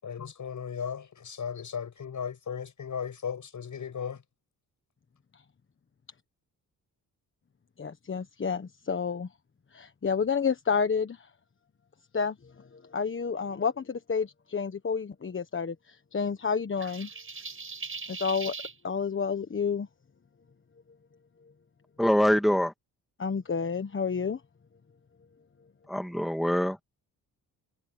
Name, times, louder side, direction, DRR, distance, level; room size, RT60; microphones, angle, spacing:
voice 1, 0.0-4.2, left 7 dB, 55° left, 5.9 m, -36 dB
voice 2, 7.8-9.3 9.7-11.3 12.1-17.1 18.1-18.5 18.8-19.9 23.2-24.4, left 6 dB, 35° left, 1.3 m, -30 dB
sound 1, 16.8-18.7, right 4 dB, 35° right, 6.7 m, -39 dB
voice 3, 22.0-22.7 25.9-26.8, equal, ahead, 1.7 m, -24 dB
cardioid pair, 85°, 37 cm